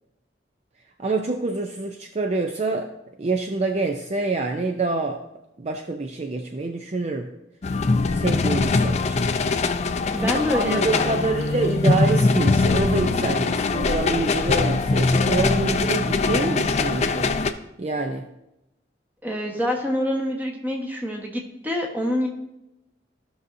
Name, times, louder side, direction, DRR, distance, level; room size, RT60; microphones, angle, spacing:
voice 1, 1.0-2.9 3.2-5.2 5.6-7.3 8.1-9.3 10.2-17.3 17.8-18.3, right 3 dB, 35° right, 4 dB, 0.5 m, -26 dB
sound 1, 7.6-17.5, left 3 dB, 35° left, 0.4 m, -22 dB
voice 2, 10.1-11.3 19.2-22.3, left 1 dB, 10° right, 0 dB, 1.2 m, -26 dB
15.0 x 6.3 x 2.6 m, 0.89 s
head